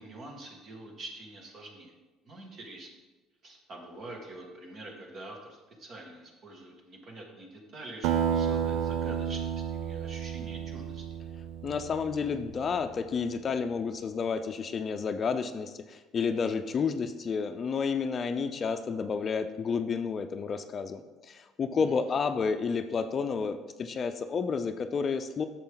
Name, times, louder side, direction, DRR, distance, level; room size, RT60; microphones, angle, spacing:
voice 1, 0.0-1.9 2.3-2.9 3.4-11.0 21.8-22.2, right 2 dB, 50° right, 1 dB, 2.1 m, -46 dB
Acoustic guitar, 8.0-12.9, right 8 dB, 80° right, 0.5 m, -31 dB
voice 2, 11.6-25.5, left 5 dB, 35° left, 8 dB, 0.5 m, -31 dB
10.5 x 6.7 x 3.9 m, 1.2 s
cardioid pair, 110°, 0 cm